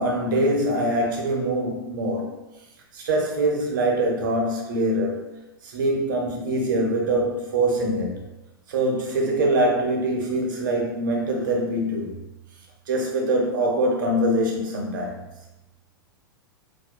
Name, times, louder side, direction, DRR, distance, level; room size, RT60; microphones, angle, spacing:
voice 1, 0.0-2.3 2.9-8.2 8.7-12.1 12.9-15.3, right 1 dB, 55° right, 0 dB, 0.6 m, -24 dB
2.7 x 2.1 x 2.2 m, 0.94 s
figure-of-eight pair, 100°, 13 cm